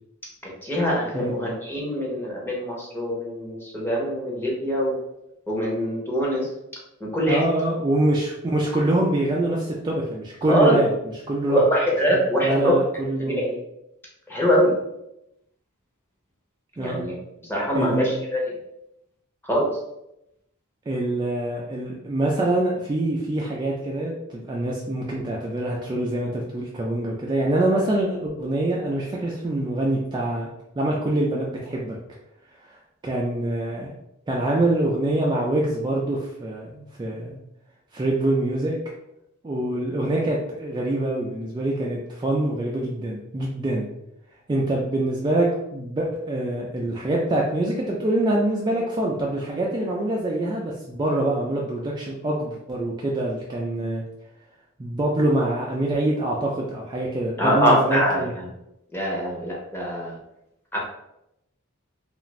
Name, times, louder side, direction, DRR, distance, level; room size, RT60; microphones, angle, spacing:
voice 1, 0.6-5.0 5.5-6.5 7.0-7.5 10.5-10.8 11.5-12.7 13.2-13.5 14.3-14.7 16.8-17.1 17.4-18.5 19.5-19.7 57.4-58.5 58.9-60.2 60.7-60.8, equal, 10° left, -4 dB, 0.8 m, -23 dB
voice 2, 7.3-11.6 12.1-13.5 16.8-17.0 17.7-18.1 20.9-30.5 30.8-32.0 32.6-32.8 33.0-33.9 34.3-37.4 37.9-38.8 39.4-43.9 44.5-54.0 54.8-58.3, right 1 dB, 20° right, -3 dB, 0.3 m, -25 dB
2.4 x 2.4 x 3.0 m, 0.83 s
head